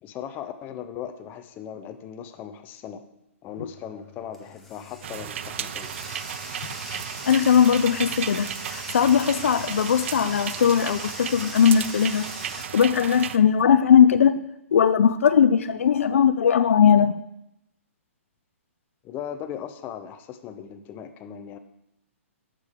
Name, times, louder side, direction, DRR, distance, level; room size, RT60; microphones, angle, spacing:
voice 1, 0.0-3.0 3.4-6.2 19.0-21.6, left 9 dB, 25° left, 8 dB, 0.7 m, -38 dB
Bathtub (filling or washing), 3.5-12.7, left 2 dB, ahead, 1.2 m, -41 dB
sound 1, 5.0-13.4, right 10 dB, 55° right, 0.4 m, -34 dB
voice 2, 7.3-12.3 12.7-14.3 14.7-17.1, left 8 dB, 70° left, 12 dB, 0.4 m, -19 dB
9.6 x 6.7 x 3.7 m, 0.84 s
hypercardioid pair, 135°, 8 cm